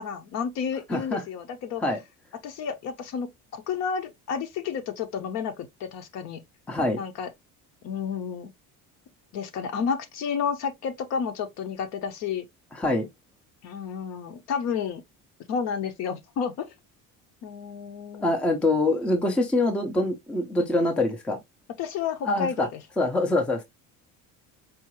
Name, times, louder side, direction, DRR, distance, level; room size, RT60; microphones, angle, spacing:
voice 1, 0.0-1.8 2.4-6.4 7.0-7.3 7.8-8.5 9.3-12.5 13.6-15.0 15.5-16.7 17.4-18.3 20.6-20.7 21.8-22.7, left 6 dB, 50° left, 0.7 m, -31 dB
voice 2, 0.9-1.2 1.8-2.0 6.7-7.0 12.7-13.1 18.2-21.4 22.2-22.7 23.0-23.6, left 2 dB, 5° left, 0.5 m, -24 dB
4.7 x 2.5 x 2.9 m
cardioid pair, 170°, 33 cm